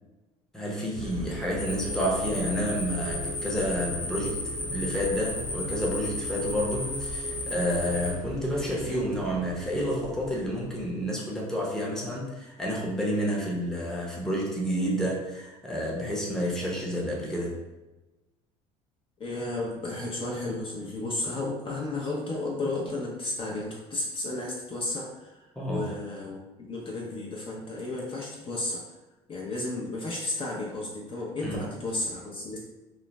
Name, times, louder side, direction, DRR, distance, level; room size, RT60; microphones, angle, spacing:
voice 1, 0.5-17.6 25.6-26.0 31.4-31.7, equal, 5° left, -4 dB, 0.8 m, -30 dB
sound 1, 0.9-11.0, right 1 dB, 80° right, 0.6 m, -38 dB
sound 2, 1.6-8.1, left 2 dB, 90° left, 1.0 m, -35 dB
voice 2, 19.2-25.4 25.7-28.8 29.3-32.6, left 2 dB, 35° left, -3 dB, 0.6 m, -33 dB
2.4 x 2.1 x 3.1 m, 1.1 s
supercardioid pair, 85°, 16 cm